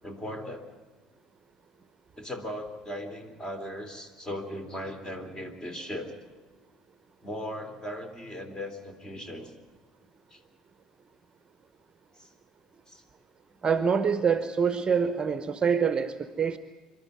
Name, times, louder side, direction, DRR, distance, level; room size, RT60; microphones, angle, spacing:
voice 1, 0.0-0.6 2.2-6.1 7.2-9.5 10.3-10.4 12.2-12.3 12.9-13.0, equal, 20° left, 7 dB, 3.3 m, -38 dB
voice 2, 13.6-16.6, right 6 dB, 30° right, 12 dB, 0.9 m, -25 dB
26.0 x 12.0 x 9.7 m, 1.3 s
figure-of-eight pair, 55°, 3 cm